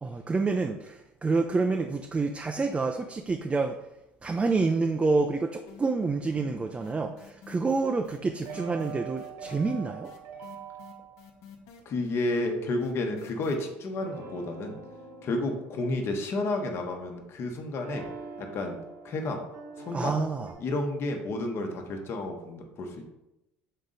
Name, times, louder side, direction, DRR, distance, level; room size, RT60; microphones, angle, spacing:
voice 1, 0.0-3.8 4.2-10.1 19.9-20.5, right 3 dB, 20° right, 4 dB, 0.5 m, -28 dB
sound 1, 5.7-6.2 6.4-13.5, left 7 dB, 65° left, 1.1 m, -50 dB
sound 2, 8.5-11.2 13.9-17.3 17.8-20.5, right 5 dB, 70° right, 1.5 m, -44 dB
voice 2, 11.8-14.8 15.2-18.0 18.4-18.8 19.0-19.4 19.8-20.1 20.6-23.0, left 2 dB, 45° left, 3 dB, 1.2 m, -31 dB
6.5 x 3.7 x 4.0 m, 0.90 s
hypercardioid pair, 85°, 6 cm